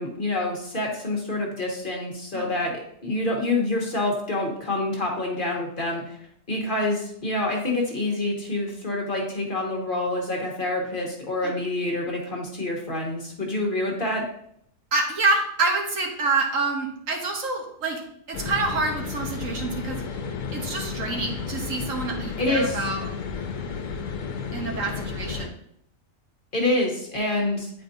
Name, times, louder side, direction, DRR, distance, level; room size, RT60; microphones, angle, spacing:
voice 1, 0.0-2.7 3.0-6.2 6.5-14.2 22.4-22.9 26.5-27.7, left 2 dB, 40° left, 0 dB, 1.2 m, -27 dB
voice 2, 14.9-18.0 18.3-20.0 20.5-23.1 24.5-25.5, right 3 dB, 65° right, 1 dB, 1.4 m, -27 dB
sound 1, 18.3-25.5, left 5 dB, 70° left, 1.1 m, -32 dB
9.0 x 4.4 x 2.6 m, 0.71 s
omnidirectional pair, 1.5 m